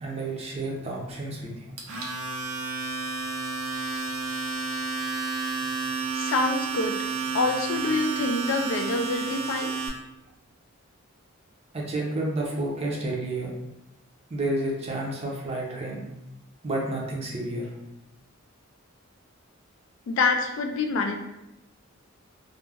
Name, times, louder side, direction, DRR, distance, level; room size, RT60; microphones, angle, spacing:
voice 1, 0.0-1.5 11.7-13.5 14.3-16.0 16.6-17.7, right 2 dB, 30° right, -2 dB, 0.5 m, -30 dB
Domestic sounds home sounds, 1.8-9.9, right 4 dB, 90° right, 0.6 m, -31 dB
voice 2, 6.1-7.0 7.3-9.7 20.1-21.2, left 3 dB, 60° left, 5 dB, 0.3 m, -26 dB
2.3 x 2.0 x 3.3 m, 0.89 s
head